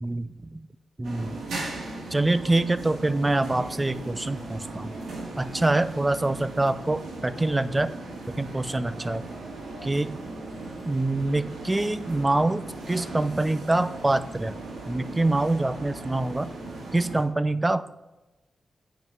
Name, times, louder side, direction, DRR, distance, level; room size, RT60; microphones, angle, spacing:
voice 1, 0.0-0.6 1.0-1.4 2.1-4.9 5.4-7.9 8.4-9.2 9.8-10.1 10.8-14.6 14.9-16.5 16.9-17.9, right 2 dB, 25° right, 14 dB, 0.6 m, -25 dB
sound 1, 1.0-17.2, right 2 dB, 85° right, 2.2 m, -38 dB
9.3 x 5.4 x 5.4 m, 1.1 s
cardioid pair, 55°, 0 cm